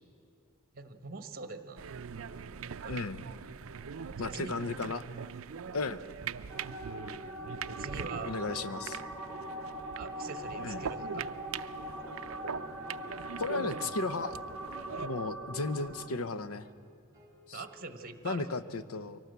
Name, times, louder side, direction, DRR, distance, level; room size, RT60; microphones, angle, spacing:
voice 1, 0.7-2.0 2.6-3.0 4.2-4.5 7.7-8.5 9.9-11.3 14.9-15.1 17.5-18.5, right 4 dB, 45° right, 9 dB, 1.2 m, -44 dB
sound 1, 1.7-2.0 2.2-2.5 2.8-3.0 3.3-3.5 3.8-4.0 4.3-4.5 4.8-5.0 5.3-5.6 5.8-6.1 6.3-6.6 6.9-7.1 7.4-7.6 7.9-8.1 8.4-8.6 8.9-9.2 9.4-9.6 9.9-10.2 10.4-10.7 11.0-11.2 11.5-11.7 12.0-12.2 12.5-12.7 13.0-13.2 13.5-13.8 14.0-14.3 14.6-14.8 15.1-15.3 15.6-15.8 16.1-16.3 16.6-16.8 17.1-17.4 17.6-17.9, right 1 dB, 20° right, 3.5 m, -61 dB
sound 2, 1.8-15.1, right 6 dB, 70° right, 0.5 m, -42 dB
voice 2, 2.9-3.2 4.2-5.0 5.7-6.0 8.2-9.0 10.6-10.8 13.4-14.4 15.0-16.6 17.5-17.6 18.2-19.2, left 3 dB, 90° left, 13 dB, 0.8 m, -35 dB
sound 3, 6.5-16.1, right 1 dB, 5° left, 2.4 m, -42 dB
24.0 x 18.0 x 8.1 m, 2.1 s
head